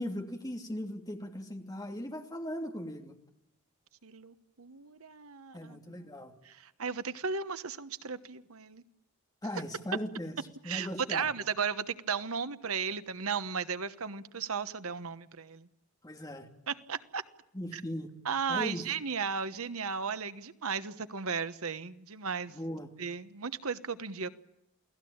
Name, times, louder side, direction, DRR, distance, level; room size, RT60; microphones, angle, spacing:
voice 1, 0.0-3.2 5.5-6.3 9.4-10.4 10.6-11.3 16.0-16.5 17.5-18.1 18.5-18.8 22.5-22.9, equal, 15° left, 2.9 m, -38 dB
voice 2, 4.0-6.1 6.4-8.8 10.6-15.7 16.7-17.2 17.7-17.8 18.2-22.5 23.0-24.3, right 6 dB, 70° right, 1.2 m, -35 dB
29.0 x 18.0 x 8.7 m
head